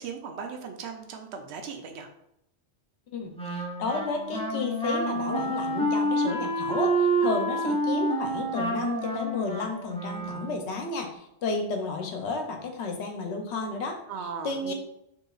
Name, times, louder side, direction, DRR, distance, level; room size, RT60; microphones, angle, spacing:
voice 1, 0.0-2.1 14.1-14.7, right 6 dB, 75° right, 4 dB, 0.8 m, -38 dB
voice 2, 3.1-14.0 14.4-14.7, left 3 dB, 75° left, 4 dB, 0.9 m, -32 dB
Wind instrument woodwind instrument, 3.4-10.7, right 1 dB, 5° left, 0.5 m, -28 dB
4.9 x 2.9 x 2.4 m, 0.78 s
omnidirectional pair, 1.2 m